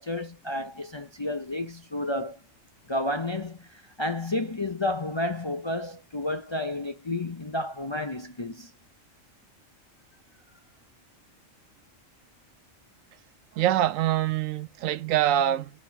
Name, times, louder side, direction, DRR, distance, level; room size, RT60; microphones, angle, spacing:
voice 1, 0.0-2.4 2.9-3.7 4.0-8.7, left 1 dB, 30° left, 0.5 m, -31 dB
voice 2, 13.6-15.7, right 12 dB, 80° right, 1.0 m, -24 dB
4.4 x 4.3 x 5.4 m
omnidirectional pair, 1.4 m